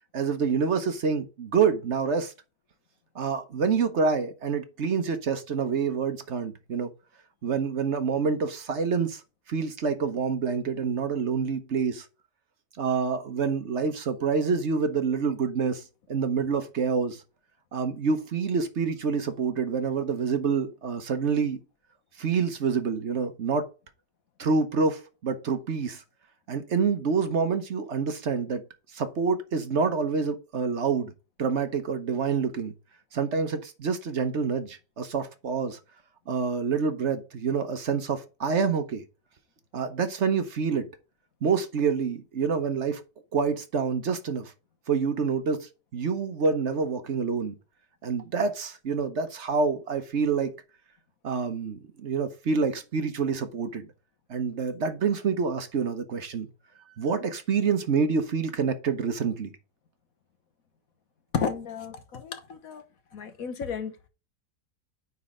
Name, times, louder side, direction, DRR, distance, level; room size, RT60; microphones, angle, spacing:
voice 1, 0.1-2.3 3.1-6.9 7.4-9.2 9.5-12.1 12.8-17.2 17.7-21.6 22.2-23.7 24.4-26.0 26.5-28.6 28.9-31.1 31.4-32.7 33.1-35.8 36.3-39.0 39.7-40.9 41.4-43.0 43.3-44.5 44.9-47.5 48.0-50.5 51.2-53.9 54.3-56.5 57.0-59.5, right 5 dB, 50° right, 1.1 m, -27 dB
voice 2, 61.3-62.8 63.1-64.1, left 6 dB, 60° left, 1.3 m, -32 dB
9.4 x 4.2 x 3.7 m
omnidirectional pair, 1.8 m